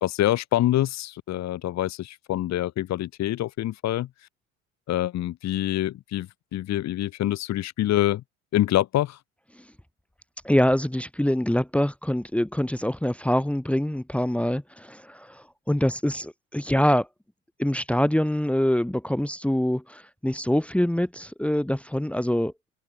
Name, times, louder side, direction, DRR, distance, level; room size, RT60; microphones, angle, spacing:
voice 1, 0.0-4.1 4.9-8.2 8.5-9.2, left 13 dB, 45° left, 1.3 m, -26 dB
voice 2, 10.4-17.1 17.6-22.5, equal, 5° left, 1.8 m, -25 dB
hypercardioid pair, 70°, 37 cm